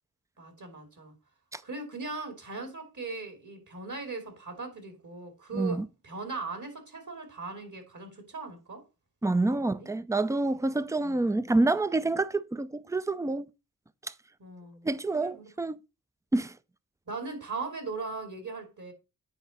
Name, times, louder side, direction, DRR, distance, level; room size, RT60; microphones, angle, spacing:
voice 1, 0.4-1.1 1.6-8.8 9.4-9.9 11.0-11.2 14.4-15.5 17.1-18.9, right 3 dB, 55° right, 2.8 m, -39 dB
voice 2, 5.5-5.9 9.2-13.5 14.0-14.1 14.8-15.8 16.3-16.5, right 2 dB, 10° right, 0.5 m, -27 dB
8.9 x 4.9 x 4.2 m
cardioid pair, 70°, 37 cm